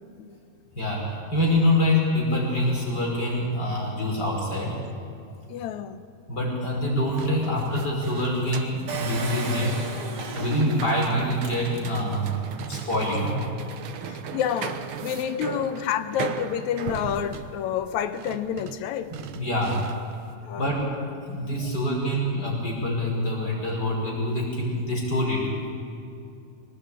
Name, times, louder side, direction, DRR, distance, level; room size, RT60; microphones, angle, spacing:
voice 1, 0.7-4.8 6.3-9.8 10.3-12.3 12.7-13.4 15.3-15.6 19.3-19.9 20.6-25.5, left 1 dB, 30° left, -3 dB, 6.0 m, -25 dB
voice 2, 5.5-6.0 14.1-19.2 20.4-20.7, left 9 dB, 75° left, 11 dB, 2.1 m, -29 dB
sound 1, 7.0-20.2, right 8 dB, 70° right, 1.3 m, -38 dB
Engine, 8.9-12.3 12.8-12.9 13.1-13.2, right 5 dB, 40° right, 2.0 m, -35 dB
21.5 x 18.5 x 8.8 m, 2.6 s
omnidirectional pair, 3.5 m